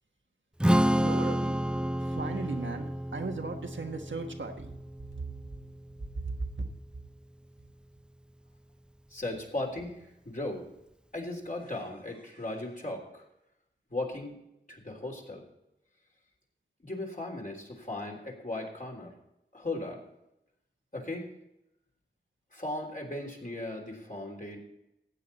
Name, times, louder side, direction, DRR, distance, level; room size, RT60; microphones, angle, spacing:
Strum, 0.6-6.9, equal, 5° right, 0.4 m, -30 dB
voice 1, 0.9-1.6 2.0-4.7 5.2-5.3 6.1-6.7, right 3 dB, 80° right, 4 dB, 1.5 m, -37 dB
voice 2, 9.1-10.7 11.1-13.2 13.9-14.4 14.7-15.4 16.8-19.1 19.5-20.0 20.9-21.3 22.5-24.6, left 2 dB, 45° left, -1 dB, 3.3 m, -37 dB
15.0 x 8.8 x 4.2 m, 0.86 s
wide cardioid pair, 60°, 19 cm